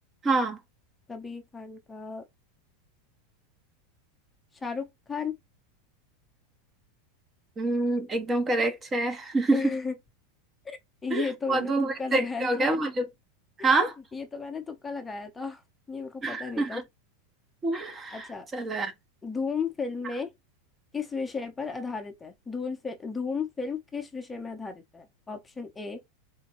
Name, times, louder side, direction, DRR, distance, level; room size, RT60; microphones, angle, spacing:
voice 1, 0.2-0.6 7.6-9.6 11.1-13.1 13.6-13.9 16.2-16.8 17.6-18.3 18.5-18.9, right 2 dB, 20° right, 0.8 m, -26 dB
voice 2, 1.1-2.2 4.5-5.4 9.5-9.9 10.6-12.7 13.6-13.7 14.1-15.6 15.9-16.8 18.1-18.5 19.2-20.3 20.9-26.0, left 5 dB, 15° left, 0.7 m, -34 dB
3.8 x 2.2 x 2.9 m
hypercardioid pair, 100°, 0 cm